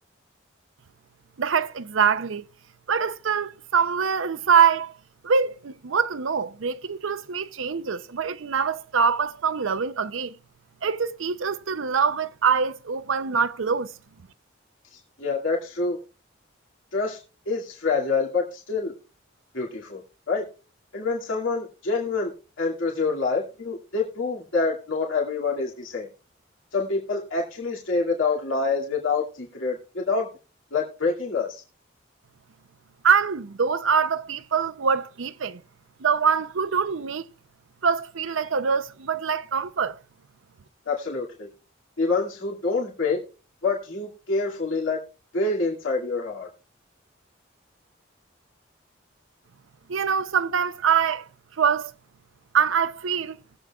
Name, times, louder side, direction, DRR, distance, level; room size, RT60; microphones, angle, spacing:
voice 1, 1.4-2.4 2.9-4.9 5.2-10.3 10.8-13.9 33.0-35.6 36.0-37.3 37.8-40.0 49.9-51.3 51.6-51.9 52.5-53.4, right 6 dB, 85° right, 0.6 m, -24 dB
voice 2, 14.9-16.0 16.9-17.2 17.5-18.9 19.5-20.0 20.3-20.4 20.9-22.3 22.6-26.1 26.7-30.3 30.7-31.6 40.9-41.5 42.0-43.2 43.6-45.0 45.3-46.5, left 4 dB, 90° left, 2.4 m, -26 dB
20.0 x 8.0 x 2.4 m
head